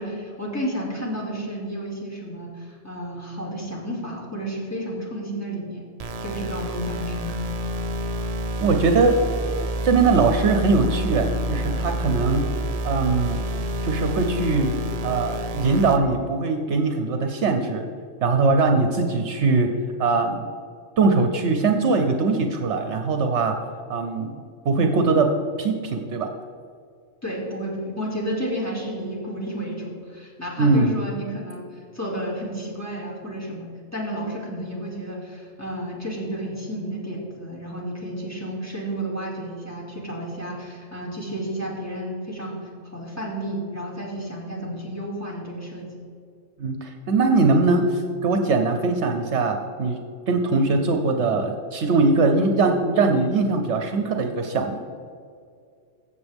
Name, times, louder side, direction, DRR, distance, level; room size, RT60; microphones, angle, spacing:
voice 1, 0.0-5.8 6.2-7.5 27.2-31.7 31.9-42.6 42.9-45.9, right 1 dB, 10° left, -5 dB, 2.4 m, -32 dB
sound 1, 6.0-16.0, right 1 dB, 45° right, 0.5 m, -28 dB
voice 2, 8.6-9.2 9.8-12.5 12.8-13.4 13.8-14.7 15.0-17.8 18.2-19.7 20.0-20.4 21.0-23.6 23.9-24.3 24.6-25.3 25.6-26.3 30.6-30.9 46.6-50.0 50.3-54.8, right 3 dB, 65° right, 5 dB, 1.0 m, -21 dB
15.0 x 7.0 x 3.5 m, 2.3 s
omnidirectional pair, 1.3 m